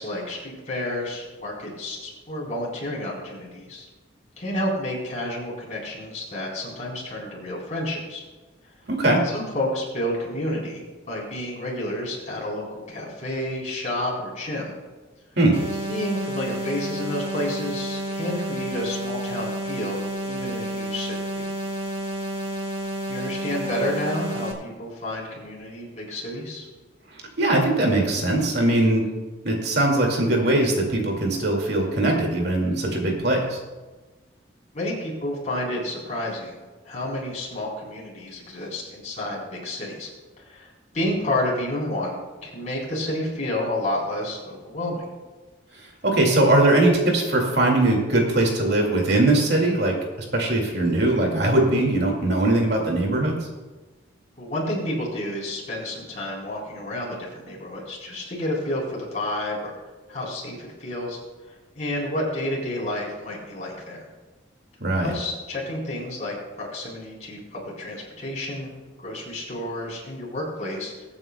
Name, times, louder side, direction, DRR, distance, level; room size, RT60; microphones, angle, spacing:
voice 1, 0.0-3.9 4.4-8.2 9.2-14.7 15.9-21.5 23.1-26.7 34.7-40.1 40.4-40.7 40.9-45.0 54.4-59.7 60.1-61.2 61.8-64.0 65.0-68.7 69.0-71.1, left 1 dB, 35° left, -4 dB, 3.9 m, -30 dB
voice 2, 8.9-9.2 15.4-15.6 27.4-29.0 29.4-33.6 46.0-49.9 50.3-53.4 64.8-65.1, right 2 dB, 55° right, 1 dB, 2.2 m, -20 dB
sound 1, 15.5-24.5, right 1 dB, 25° right, 1.4 m, -30 dB
22.5 x 8.8 x 2.3 m, 1.2 s
head